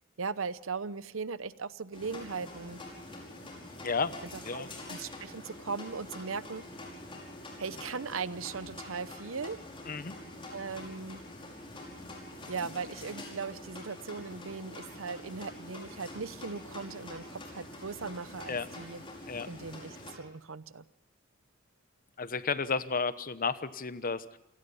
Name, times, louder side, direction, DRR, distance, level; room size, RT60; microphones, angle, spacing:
voice 1, 0.2-2.8 4.5-4.6 4.9-6.6 7.6-9.6 10.5-11.2 12.5-19.0 19.5-20.8, right 5 dB, 70° right, 16 dB, 0.8 m, -38 dB
sound 1, 1.9-20.1, left 1 dB, 25° left, 5.4 m, -46 dB
voice 2, 3.8-4.2 4.4-4.7 9.9-10.2 18.5-18.7 19.3-19.5 22.2-24.4, left 4 dB, 40° left, 14 dB, 1.0 m, -32 dB
28.0 x 18.0 x 5.6 m, 0.88 s
head